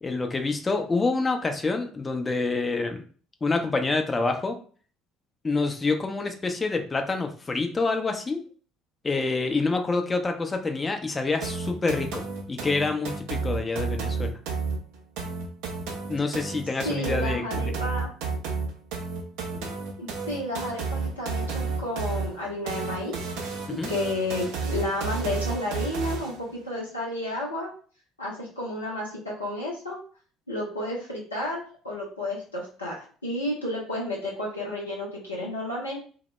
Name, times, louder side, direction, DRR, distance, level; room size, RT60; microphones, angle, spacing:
voice 1, 0.0-3.0 3.4-4.5 5.4-8.4 9.0-12.2 12.5-14.4 16.1-17.8 23.7-23.9, left 3 dB, 25° left, 5 dB, 0.5 m, -27 dB
sound 1, 11.4-26.4, right 4 dB, 65° right, 0.4 m, -32 dB
voice 2, 16.8-18.1 19.5-23.1 23.7-27.7 28.2-30.0 30.5-33.0 33.2-36.0, left 1 dB, 90° left, -4 dB, 0.5 m, -31 dB
2.1 x 2.0 x 2.9 m, 0.42 s
figure-of-eight pair, 55°, 0 cm